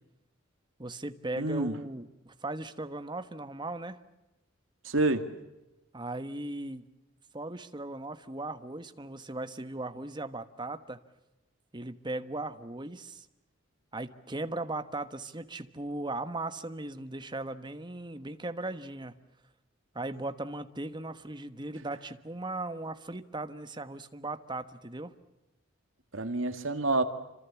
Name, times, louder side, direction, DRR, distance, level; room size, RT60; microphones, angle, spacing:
voice 1, 0.8-4.0 5.9-6.8 7.3-11.0 11.7-13.3 13.9-19.1 19.9-25.1, right 2 dB, 20° right, 10 dB, 1.3 m, -38 dB
voice 2, 1.4-1.8 4.8-5.3 26.1-27.0, right 2 dB, 70° right, 8 dB, 2.2 m, -28 dB
28.0 x 26.0 x 7.2 m, 0.97 s
head